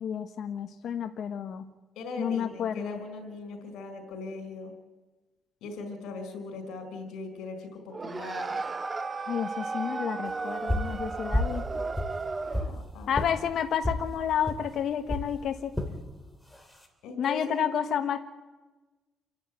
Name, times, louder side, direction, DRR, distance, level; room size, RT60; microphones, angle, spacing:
voice 1, 0.0-1.7 2.2-3.0 9.3-11.6 13.1-15.7 17.2-18.2, left 8 dB, 65° left, 7 dB, 1.1 m, -30 dB
voice 2, 1.9-4.7 5.6-8.6 12.4-13.2 17.0-17.7, left 3 dB, 85° left, 6 dB, 4.5 m, -40 dB
sound 1, 7.9-12.8, right 4 dB, 25° right, 1.1 m, -34 dB
sound 2, 10.7-11.0 11.3-11.6 11.9-12.7 13.1-13.3 13.8-14.0 14.5-14.6 15.1-15.3 15.7-15.9 16.5-16.9, left 1 dB, 5° left, 3.2 m, -29 dB
28.0 x 11.0 x 9.2 m, 1.2 s
cardioid pair, 110°, 0 cm